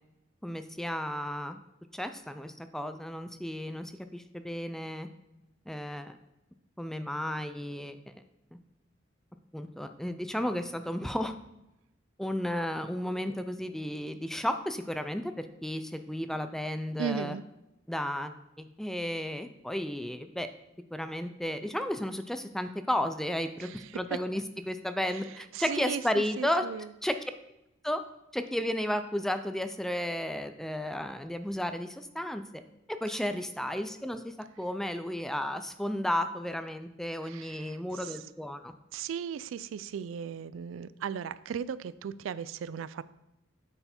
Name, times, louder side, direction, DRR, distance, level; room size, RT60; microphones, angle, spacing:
voice 1, 0.4-1.6 1.9-5.1 5.7-6.2 6.8-8.0 8.5-8.6 9.5-11.3 12.2-17.4 17.9-20.5 20.9-24.4 24.7-26.6 27.0-27.1 27.8-28.0 28.3-32.6 32.9-38.7, left 1 dB, ahead, 9 dB, 0.3 m, -33 dB
voice 2, 17.0-17.4 23.6-24.0 25.1-26.9 33.1-33.2 37.2-38.2 38.9-43.0, right 7 dB, 85° right, 17 dB, 0.3 m, -37 dB
8.8 x 4.4 x 4.3 m, 0.91 s
head